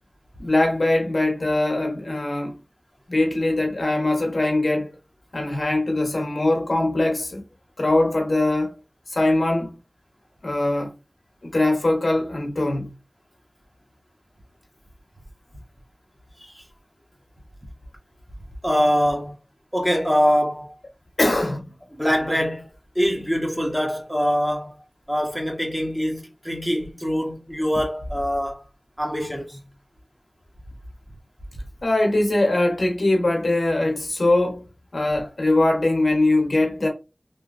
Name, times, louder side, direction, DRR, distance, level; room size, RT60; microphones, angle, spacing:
voice 1, 0.4-2.5 3.1-4.9 5.3-7.4 7.8-8.7 9.1-9.7 10.4-10.9 11.4-12.9 21.2-21.7 31.8-36.9, left 2 dB, 70° left, 1.0 m, -22 dB
voice 2, 18.6-19.4 19.7-20.7 22.0-24.7 25.1-28.6 29.0-29.6, equal, 10° right, 1.1 m, -24 dB
3.4 x 2.7 x 2.5 m
wide cardioid pair, 50°, 0 cm